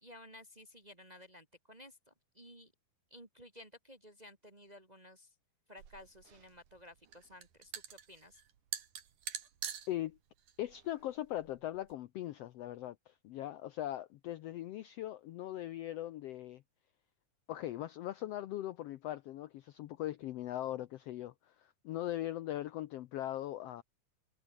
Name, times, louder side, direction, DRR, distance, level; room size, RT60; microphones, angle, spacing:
voice 1, 0.0-2.7 3.1-5.3 5.7-8.4, left 1 dB, 15° right, 1.5 m, -55 dB
sound 1, 5.8-11.9, right 9 dB, 90° right, 3.8 m, -46 dB
voice 2, 9.9-10.2 10.6-16.6 17.5-23.8, left 13 dB, 75° left, 1.5 m, -40 dB
omnidirectional pair, 3.5 m